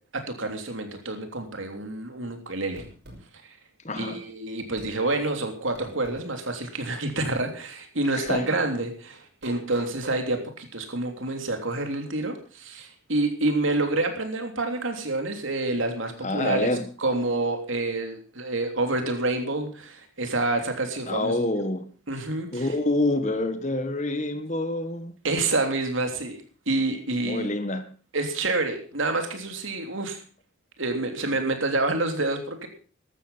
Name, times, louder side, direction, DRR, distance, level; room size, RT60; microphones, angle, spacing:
voice 1, 0.1-2.8 4.0-16.7 17.0-21.3 22.1-22.7 25.2-26.4 26.7-27.5 28.1-30.2 30.8-32.7, right 2 dB, 70° right, 3.2 m, -28 dB
sound 1, 2.8-3.2 4.8-5.0 5.7-6.3 7.2-7.4 8.3-8.4 9.4-10.2, right 1 dB, 50° right, 5.8 m, -42 dB
voice 2, 3.8-4.2 8.1-8.5 16.2-16.9 21.1-21.9 22.5-25.1 27.2-27.9, left 2 dB, 35° left, 1.5 m, -27 dB
14.0 x 12.5 x 5.7 m
head